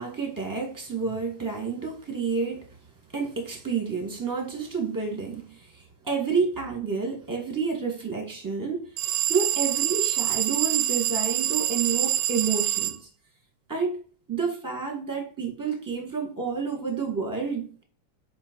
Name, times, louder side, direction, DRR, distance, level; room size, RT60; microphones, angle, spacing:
voice 1, 0.0-2.8 3.1-8.9 9.3-13.0 13.7-14.0 14.3-17.7, right 5 dB, 10° right, 1.4 m, -29 dB
sound 1, 9.0-13.0, right 13 dB, 85° right, 1.4 m, -25 dB
5.4 x 4.9 x 4.5 m
omnidirectional pair, 2.3 m